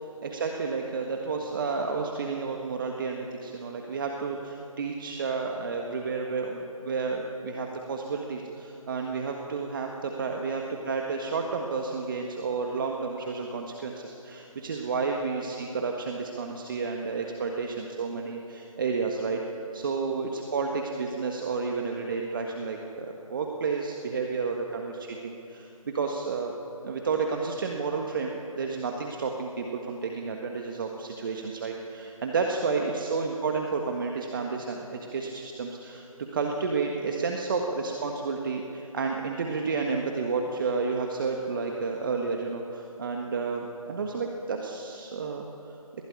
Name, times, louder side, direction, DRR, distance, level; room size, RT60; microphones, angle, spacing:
voice 1, 0.2-19.4 19.7-25.7 25.9-26.5 26.8-36.0 36.3-45.8, right 4 dB, 35° right, 2 dB, 1.6 m, -31 dB
20.5 x 17.0 x 9.9 m, 2.9 s
figure-of-eight pair, 155°, 19 cm